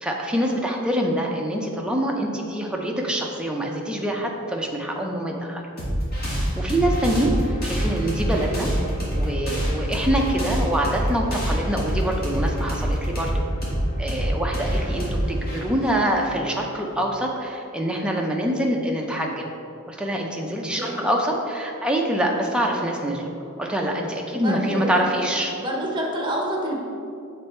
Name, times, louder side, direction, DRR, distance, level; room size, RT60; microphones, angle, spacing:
voice 1, 0.0-5.6 6.6-8.7 9.1-13.3 14.0-19.4 19.9-23.3 23.6-25.6, right 1 dB, 5° right, -1 dB, 0.5 m, -25 dB
sound 1, 5.8-16.9, equal, 45° left, 1.5 m, -26 dB
voice 2, 20.7-21.1 24.3-25.2 25.6-26.8, right 1 dB, 20° right, -2 dB, 0.9 m, -28 dB
7.2 x 3.3 x 4.2 m, 2.7 s
head